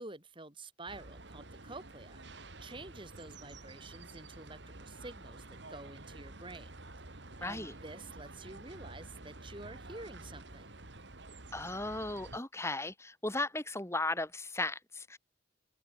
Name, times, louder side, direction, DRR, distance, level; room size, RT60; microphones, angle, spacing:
voice 1, 0.0-2.2 2.6-6.7 7.1-10.7, right 2 dB, 25° right, 4.3 m, -49 dB
sound 1, 0.9-12.4, right 2 dB, 60° right, 2.6 m, -50 dB
voice 2, 7.4-7.7 11.5-15.2, left 2 dB, 15° left, 3.1 m, -36 dB
open air
head